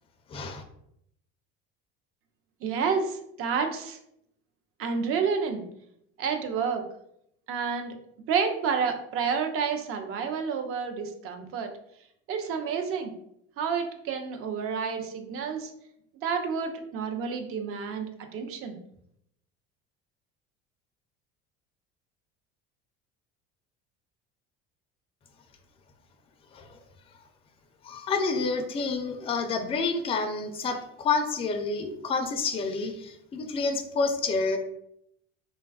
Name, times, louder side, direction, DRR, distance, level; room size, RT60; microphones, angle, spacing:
voice 1, 0.3-0.6 26.5-26.8 27.8-34.6, left 4 dB, 20° left, 5 dB, 0.3 m, -29 dB
voice 2, 2.6-4.0 4.8-5.6 6.2-6.8 7.5-7.9 8.3-11.7 12.3-13.1 13.6-15.7 16.2-18.8, right 6 dB, 50° right, 5 dB, 0.5 m, -29 dB
3.3 x 2.2 x 2.3 m, 0.74 s
supercardioid pair, 100°, 29 cm